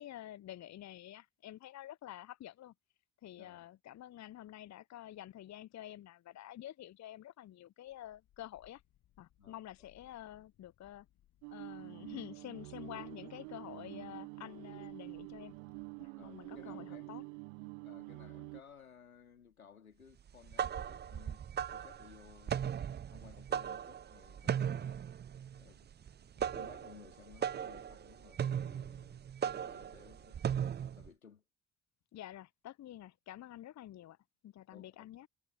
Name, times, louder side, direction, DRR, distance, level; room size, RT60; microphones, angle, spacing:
voice 1, 0.0-2.7 3.2-8.8 9.2-11.1 11.5-15.6 16.0-17.2 32.1-34.2 34.4-35.3, left 13 dB, 40° left, 0.8 m, -49 dB
voice 2, 3.4-3.7 9.4-9.6 16.2-17.2 17.8-21.4 21.7-25.1 25.5-30.4 30.7-31.4 34.7-35.1, left 7 dB, 90° left, 3.6 m, -58 dB
Child speech kid speaking / Wind, 7.8-26.2, left 13 dB, 60° left, 7.2 m, -74 dB
sound 1, 11.4-18.6, right 36 dB, 70° right, 0.8 m, -47 dB
sound 2, 20.3-31.1, right 8 dB, 25° right, 0.5 m, -38 dB
figure-of-eight pair, 45°, 41 cm